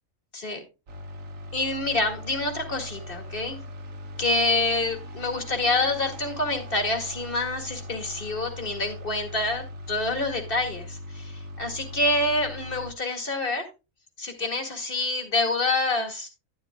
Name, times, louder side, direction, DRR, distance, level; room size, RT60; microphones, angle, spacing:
sound 1, 0.9-12.9, left 1 dB, 70° right, 1.5 m, -40 dB
voice 1, 1.5-3.6 4.2-13.7 14.2-16.3, left 2 dB, 40° left, 3 dB, 2.1 m, -27 dB
11.0 x 10.5 x 2.3 m, 0.27 s
omnidirectional pair, 1.4 m